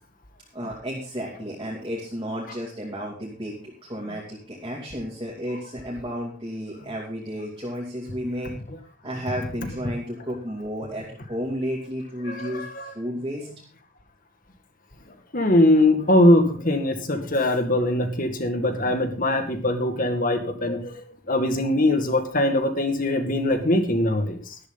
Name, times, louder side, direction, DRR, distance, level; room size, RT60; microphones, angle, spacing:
voice 1, 0.5-8.5 9.0-13.5, equal, 20° right, -4 dB, 2.7 m, -32 dB
voice 2, 12.3-12.9 15.3-21.0 21.3-24.6, left 1 dB, 40° left, 7 dB, 2.0 m, -21 dB
13.0 x 12.5 x 4.0 m, 0.40 s
head